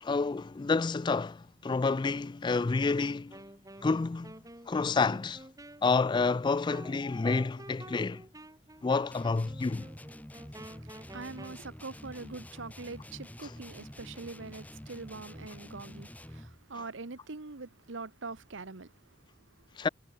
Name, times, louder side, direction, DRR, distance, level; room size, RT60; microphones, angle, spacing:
voice 1, 0.0-3.4 3.8-4.3 4.7-5.4 5.8-8.2 8.8-9.9 19.8-19.9, left 4 dB, 25° left, 0.3 m, -29 dB
Wind instrument woodwind instrument, 3.3-11.6, right 1 dB, 20° right, 3.2 m, -50 dB
sound 1, 9.1-16.6, left 1 dB, 10° left, 1.1 m, -48 dB
voice 2, 10.6-19.9, right 3 dB, 80° right, 1.2 m, -44 dB
head